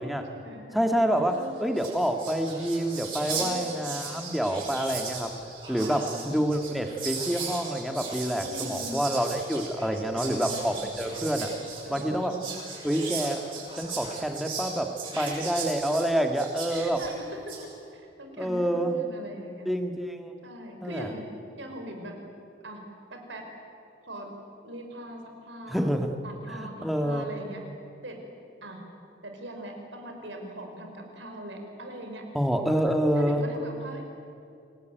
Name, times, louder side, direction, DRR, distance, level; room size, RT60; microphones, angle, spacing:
voice 1, 0.0-0.7 1.2-1.8 3.3-3.9 5.8-6.3 8.4-9.0 10.1-10.8 11.8-12.5 15.1-15.4 16.7-17.5 17.9-19.7 20.4-21.3 21.6-22.1 22.6-22.8 23.1-23.4 24.0-24.3 24.6-25.8 26.2-27.6 28.0-28.2 28.6-28.8 29.2-32.2 32.7-34.2, right 1 dB, 90° right, 3 dB, 5.0 m, -41 dB
voice 2, 0.7-5.3 5.7-11.6 11.9-12.4 12.8-13.4 13.7-17.0 18.4-19.0 19.7-20.4 20.8-21.1 25.7-26.2 26.5-27.3 32.3-33.4, equal, ahead, 4 dB, 1.8 m, -27 dB
Whispering, 1.4-1.5 1.7-17.6, right 4 dB, 30° right, 7.9 m, -37 dB
27.0 x 19.0 x 9.2 m, 2.6 s
head